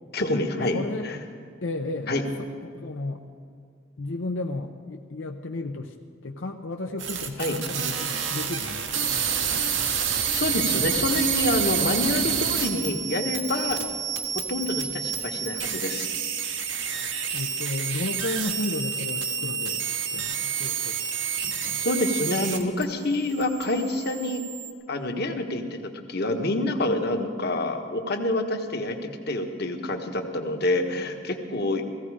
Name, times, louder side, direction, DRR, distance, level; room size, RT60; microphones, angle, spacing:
voice 1, 0.1-1.2 2.1-2.2 7.4-7.6 10.3-13.8 14.3-16.1 21.8-24.4 24.9-29.0 29.3-31.8, left 2 dB, 55° left, 4 dB, 1.3 m, -27 dB
voice 2, 0.7-1.1 1.6-2.1 2.6-3.2 4.0-5.9 6.2-9.2 17.3-19.9 20.1-21.0 21.4-21.9, left 2 dB, 80° left, 3 dB, 0.7 m, -33 dB
sound 1, 7.0-22.8 23.1-24.7, right 7 dB, 80° right, 1.3 m, -29 dB
16.5 x 16.0 x 4.9 m, 2.3 s
head